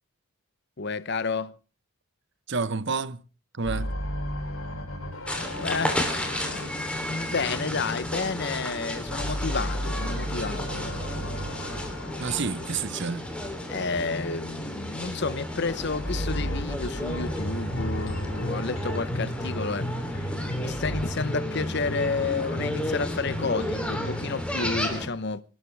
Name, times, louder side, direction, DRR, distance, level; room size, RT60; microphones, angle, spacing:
voice 1, 0.8-1.6 5.6-11.0 13.7-19.9 20.2-20.3 20.6-25.4, left 4 dB, 50° left, 0.8 m, -31 dB
voice 2, 2.5-3.2 3.5-4.0 12.2-13.3, right 4 dB, 55° right, 0.9 m, -29 dB
sound 1, 3.6-8.6 9.0-14.3 15.0-21.0, equal, 85° left, 6.1 m, -35 dB
sound 2, 5.3-25.1, left 1 dB, 5° left, 3.2 m, -33 dB
sound 3, 17.4-24.9, equal, 65° left, 7.3 m, -35 dB
25.5 x 13.0 x 3.4 m
head